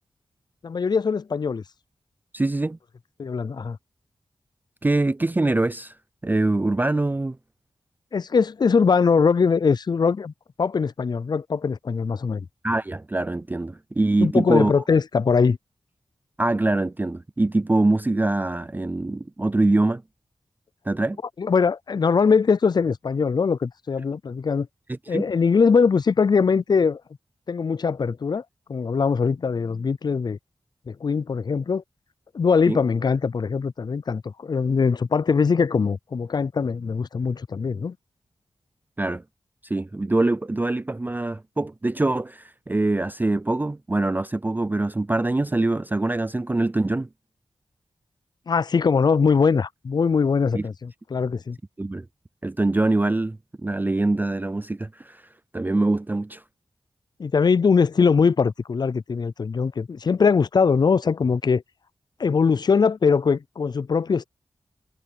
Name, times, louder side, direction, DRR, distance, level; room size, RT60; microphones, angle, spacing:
voice 1, 0.6-1.6 3.2-3.8 8.1-10.3 10.6-12.5 14.2-15.6 21.4-24.7 25.1-27.0 27.5-28.4 28.7-30.4 30.9-31.8 32.3-38.0 48.5-51.6 57.2-61.6 62.2-64.2, left 5 dB, 45° left, 0.4 m, -21 dB
voice 2, 2.3-2.8 4.8-5.9 6.2-7.4 12.6-14.7 16.4-20.0 20.9-21.2 25.1-25.3 32.7-32.8 39.0-39.2 39.6-47.1 50.5-50.7 51.8-52.0 52.4-55.2 55.5-56.4, right 2 dB, 20° right, 0.4 m, -23 dB
cardioid pair, 60°, 10 cm